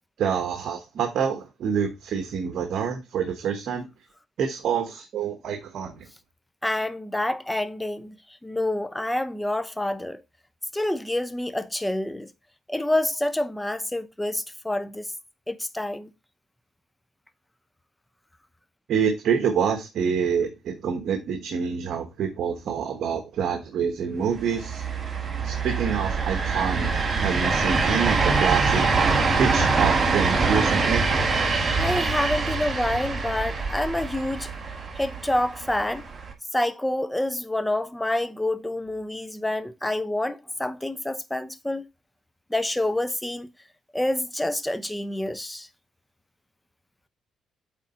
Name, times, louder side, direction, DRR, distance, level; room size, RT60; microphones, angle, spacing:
voice 1, 0.2-3.8 4.4-6.1 18.9-24.8 25.4-26.9 27.2-28.9 29.4-31.0, right 7 dB, 70° right, 1.2 m, -27 dB
voice 2, 6.6-8.1 8.4-10.2 10.7-12.3 12.7-15.1 15.5-16.1 31.8-34.5 35.0-36.0 36.5-41.9 42.5-43.5 43.9-45.7, left 1 dB, 10° left, 0.7 m, -27 dB
sound 1, 24.4-36.3, right 4 dB, 35° right, 1.6 m, -24 dB
8.3 x 3.9 x 4.3 m
cardioid pair, 90°, 0 cm